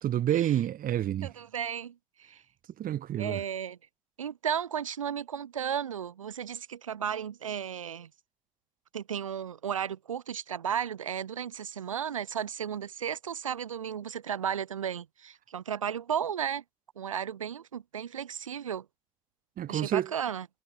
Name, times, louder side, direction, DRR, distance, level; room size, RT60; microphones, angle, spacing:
voice 1, 0.0-1.3 2.8-3.4 19.6-20.1, right 11 dB, 60° right, 4.1 m, -28 dB
voice 2, 1.2-2.4 3.2-3.8 4.2-8.1 8.9-16.6 17.0-18.8 19.7-20.5, right 8 dB, 90° right, 1.2 m, -34 dB
figure-of-eight pair, 45°, 16 cm